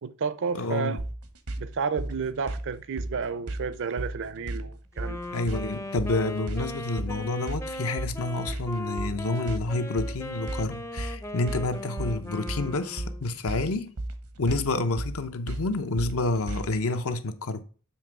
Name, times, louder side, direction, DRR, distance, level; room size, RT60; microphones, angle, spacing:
voice 1, 0.0-1.0 1.6-5.2, right 5 dB, 60° right, 0.5 m, -31 dB
voice 2, 0.5-1.0 5.3-13.9 14.4-17.6, left 2 dB, 70° left, 0.8 m, -29 dB
sound 1, 1.0-16.9, right 1 dB, 75° right, 0.9 m, -35 dB
Wind instrument woodwind instrument, 4.9-13.3, left 2 dB, 15° left, 0.5 m, -38 dB
7.1 x 3.4 x 5.9 m
head